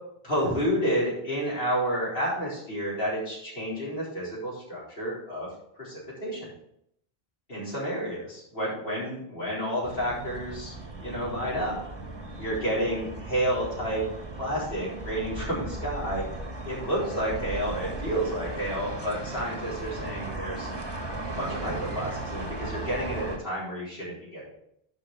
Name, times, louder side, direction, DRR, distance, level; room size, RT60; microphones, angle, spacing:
voice 1, 0.2-5.5 5.8-6.5 7.5-11.8 12.4-14.0 14.4-16.2 16.6-20.7 21.4-24.5, equal, 65° left, -7 dB, 4.1 m, -30 dB
sound 1, 9.8-23.4, right 2 dB, 25° right, 1.4 m, -37 dB
11.0 x 5.0 x 4.7 m, 0.74 s
omnidirectional pair, 1.1 m